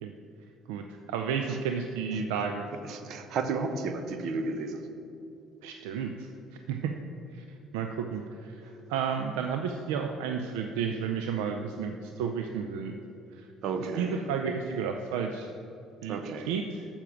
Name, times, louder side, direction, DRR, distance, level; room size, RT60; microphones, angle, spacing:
voice 1, 0.7-2.7 5.6-6.3 6.7-6.9 7.3-7.4 7.7-8.6 8.9-13.0 13.3-13.5 13.8-15.5 16.0-16.2 16.5-16.9, right 6 dB, 85° right, 5 dB, 0.4 m, -32 dB
voice 2, 2.9-4.8 13.6-14.3 16.1-16.5, right 4 dB, 65° right, 8 dB, 0.8 m, -32 dB
7.2 x 6.9 x 6.0 m, 2.7 s
supercardioid pair, 75°, 0 cm